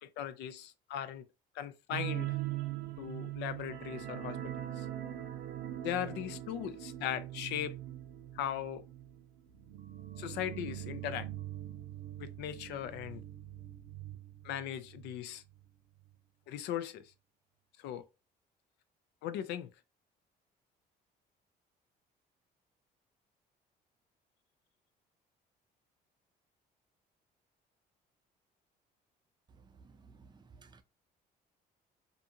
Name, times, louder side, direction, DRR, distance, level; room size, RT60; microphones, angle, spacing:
voice 1, 0.0-1.3 1.5-2.4 3.0-4.9 5.8-7.8 8.3-8.8 10.2-11.3 12.2-13.2 14.4-15.4 16.5-17.1 17.8-18.0 19.2-19.7, left 10 dB, 80° left, 0.4 m, -38 dB
sound 1, 1.9-15.2 15.5-15.7 16.0-16.1, right 13 dB, 90° right, 0.5 m, -42 dB
voice 2, 29.8-30.8, right 4 dB, 25° right, 0.4 m, -57 dB
2.5 x 2.4 x 2.7 m
cardioid pair, 110°, 17 cm